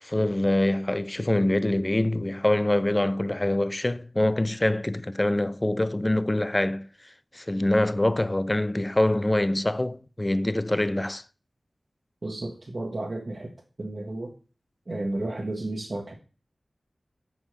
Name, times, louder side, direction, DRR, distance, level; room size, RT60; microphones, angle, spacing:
voice 1, 0.0-6.9 7.3-11.2, left 1 dB, 25° left, 0.4 m, -24 dB
voice 2, 12.2-13.5 13.8-14.3 14.9-16.1, right 2 dB, 50° right, 1.3 m, -32 dB
9.0 x 5.3 x 3.3 m
wide cardioid pair, 55°, 0 cm